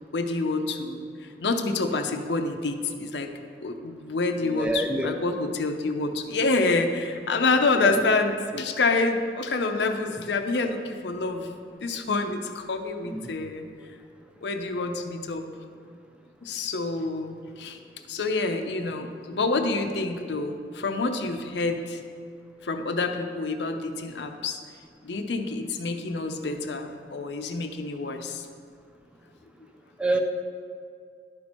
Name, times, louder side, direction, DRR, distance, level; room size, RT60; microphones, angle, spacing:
voice 1, 0.1-3.3 3.6-13.7 14.4-15.4 16.4-17.8 18.1-22.0 22.6-24.6 25.0-28.4, left 3 dB, 80° left, 6 dB, 0.6 m, -27 dB
voice 2, 4.5-5.1 7.8-8.0 13.0-13.2 30.0-30.2, right 1 dB, 5° right, 3 dB, 0.4 m, -26 dB
11.5 x 4.4 x 4.3 m, 2.3 s
head